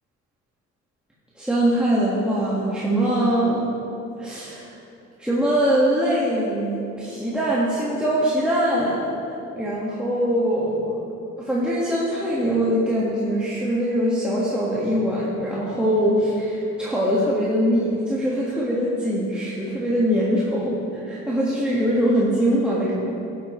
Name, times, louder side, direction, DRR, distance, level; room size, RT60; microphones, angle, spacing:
voice 1, 1.4-3.6 4.2-4.7 5.2-9.1 9.5-11.0 11.4-22.9, equal, 5° right, -8 dB, 1.6 m, -22 dB
13.0 x 7.7 x 3.1 m, 2.7 s
cardioid pair, 90°, 30 cm